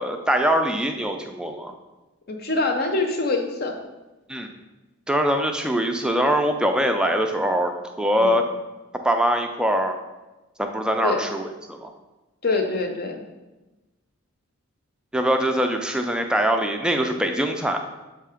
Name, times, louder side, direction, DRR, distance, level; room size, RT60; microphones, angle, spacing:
voice 1, 0.0-1.7 4.3-4.5 5.1-7.7 8.0-8.4 9.0-10.0 10.6-11.9 15.1-17.8, equal, 5° right, 4 dB, 0.4 m, -23 dB
voice 2, 2.3-3.8 8.2-8.3 11.0-11.3 12.4-13.2, left 3 dB, 45° left, 4 dB, 0.7 m, -24 dB
7.6 x 2.8 x 4.9 m, 1.1 s
head